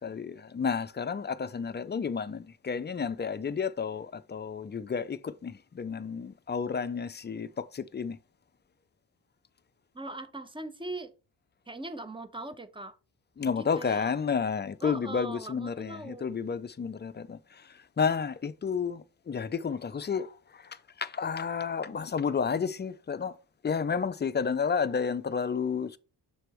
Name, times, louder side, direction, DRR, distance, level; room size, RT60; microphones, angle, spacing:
voice 1, 0.0-8.2 13.4-23.4 23.6-26.0, left 6 dB, 25° left, 0.4 m, -31 dB
voice 2, 9.9-11.1 11.7-13.0 13.6-14.1 14.8-16.3, right 2 dB, 10° right, 0.7 m, -40 dB
6.8 x 3.3 x 4.5 m
cardioid pair, 95°, 42 cm